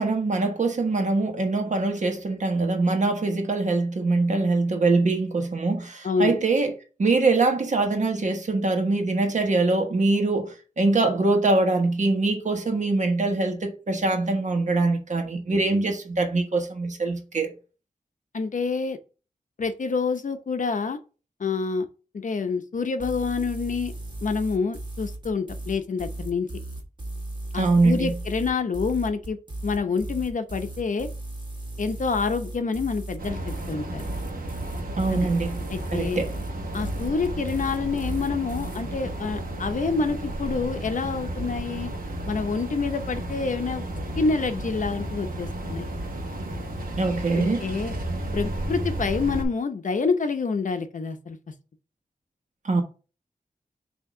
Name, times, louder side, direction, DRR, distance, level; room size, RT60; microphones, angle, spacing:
voice 1, 0.0-6.7 7.0-17.5 27.5-28.1 35.0-35.6 35.9-36.3 47.0-47.7 52.6-52.8, right 3 dB, 60° right, 1.3 m, -23 dB
voice 2, 18.3-19.0 19.6-21.0 21.4-21.9 22.1-23.9 24.2-26.5 27.5-29.4 29.6-31.1 31.8-34.0 35.1-35.3 35.7-36.2 36.7-41.9 42.3-43.8 44.2-45.9 47.4-47.9 48.3-51.4, left 4 dB, 60° left, 0.7 m, -27 dB
sound 1, 23.0-38.8, right 1 dB, 30° right, 1.4 m, -36 dB
sound 2, 33.2-49.5, right 1 dB, 80° right, 1.2 m, -33 dB
6.2 x 2.9 x 5.4 m
wide cardioid pair, 120°, 14 cm